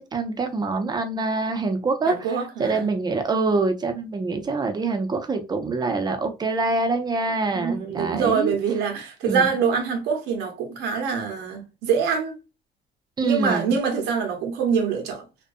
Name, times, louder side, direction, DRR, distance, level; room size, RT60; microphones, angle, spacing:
voice 1, 0.0-8.6 9.3-9.5 13.2-13.7, right 3 dB, 25° right, 0.5 m, -25 dB
voice 2, 2.1-2.9 7.5-12.4 13.2-15.2, right 6 dB, 90° right, 0.8 m, -25 dB
2.4 x 2.2 x 2.5 m
cardioid pair, 110°, 17 cm